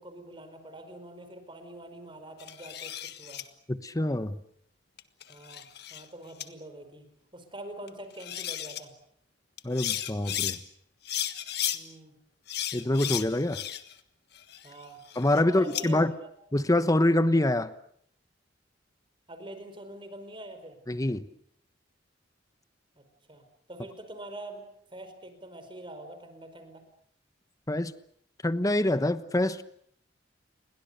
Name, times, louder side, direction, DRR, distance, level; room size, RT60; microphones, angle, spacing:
voice 1, 0.0-3.4 5.3-7.0 7.3-8.9 11.7-12.1 14.6-15.0 15.4-16.3 19.3-20.8 23.0-23.1 23.3-24.6 24.9-26.8, right 1 dB, 30° right, 9 dB, 4.7 m, -45 dB
sound 1, 2.4-3.4 5.0-6.0 6.4-6.5 7.9-8.0 8.2-8.8 9.6-10.6 11.0-11.8 12.5-14.0 14.3-15.8, left 11 dB, 60° left, 1.5 m, -34 dB
voice 2, 3.7-4.4 9.6-10.6 12.7-13.6 15.2-16.1 16.5-17.7 20.9-21.2 27.7-27.9 28.4-29.6, left 1 dB, 20° left, 13 dB, 1.0 m, -25 dB
30.0 x 22.5 x 6.7 m, 0.67 s
head